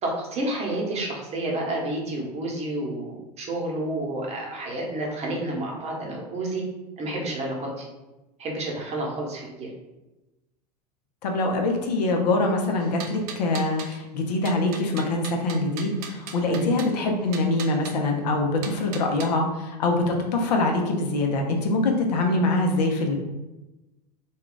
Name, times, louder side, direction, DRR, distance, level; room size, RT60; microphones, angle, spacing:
voice 1, 0.0-6.6 7.0-7.9 8.4-9.7 16.5-16.7, right 1 dB, 30° right, -1 dB, 0.9 m, -30 dB
voice 2, 11.2-23.2, left 2 dB, 75° left, 2 dB, 0.6 m, -24 dB
sound 1, 12.8-14.0 14.5-17.0 17.3-18.0 18.6-19.3, right 6 dB, 65° right, 0.5 m, -39 dB
2.3 x 2.3 x 3.8 m, 1.0 s
hypercardioid pair, 90°, 21 cm